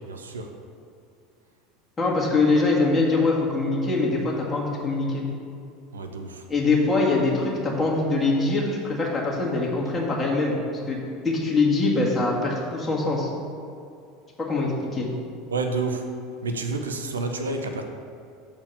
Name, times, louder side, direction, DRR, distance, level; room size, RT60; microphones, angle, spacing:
voice 1, 0.1-0.5 5.9-6.4 15.5-16.0 16.4-17.8, right 3 dB, 85° right, 5 dB, 0.6 m, -29 dB
voice 2, 2.0-5.2 6.5-10.6 10.9-11.0 11.2-13.3 14.4-15.1, left 3 dB, 20° left, -3 dB, 1.9 m, -23 dB
6.9 x 4.5 x 5.8 m, 2.5 s
hypercardioid pair, 75°, 0 cm